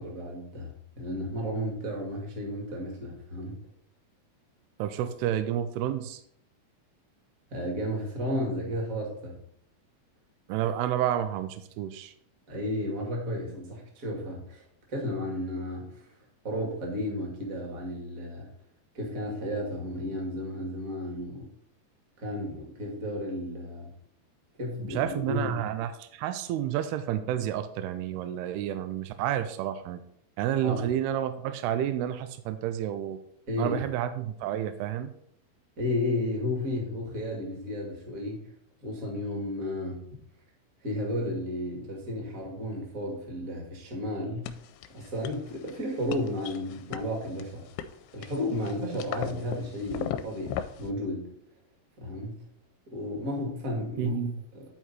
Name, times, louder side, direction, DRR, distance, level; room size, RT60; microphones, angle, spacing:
voice 1, 0.0-3.6 7.5-9.3 12.5-14.6 14.9-16.1 16.4-18.5 18.9-21.5 22.2-23.9 24.6-25.6 30.6-30.8 33.5-33.8 35.8-38.5 38.8-40.0 40.8-44.5 44.9-47.6 48.1-51.3 52.0-52.4 52.9-54.2 54.5-54.6, left 1 dB, 30° right, -1 dB, 1.5 m, -33 dB
voice 2, 4.8-6.2 10.5-12.1 24.9-30.0 30.4-33.2 33.6-35.1 54.0-54.4, right 11 dB, 85° right, 10 dB, 2.5 m, -30 dB
sound 1, 44.5-50.9, left 9 dB, 85° left, 2.6 m, -39 dB
11.0 x 4.7 x 4.2 m, 0.70 s
omnidirectional pair, 4.7 m